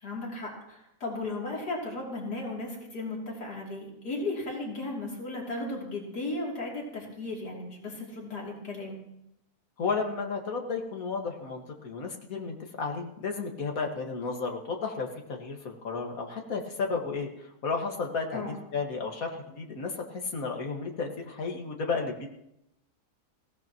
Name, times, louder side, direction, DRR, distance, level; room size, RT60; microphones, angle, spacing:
voice 1, 0.0-9.0 18.3-18.6, left 2 dB, 80° left, -3 dB, 3.7 m, -35 dB
voice 2, 9.8-22.3, left 4 dB, 60° left, 1 dB, 2.3 m, -33 dB
20.0 x 17.0 x 3.0 m, 0.81 s
omnidirectional pair, 1.7 m